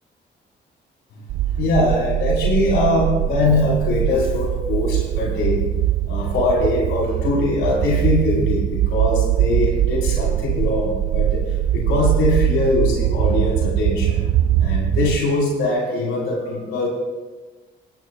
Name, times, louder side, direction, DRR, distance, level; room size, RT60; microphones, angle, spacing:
sound 1, 1.3-15.2, right 11 dB, 75° right, 0.5 m, -21 dB
voice 1, 1.6-5.6 6.1-16.9, left 2 dB, 85° left, -4 dB, 3.8 m, -22 dB
17.5 x 16.0 x 2.2 m, 1.2 s
cardioid pair, 90°, 20 cm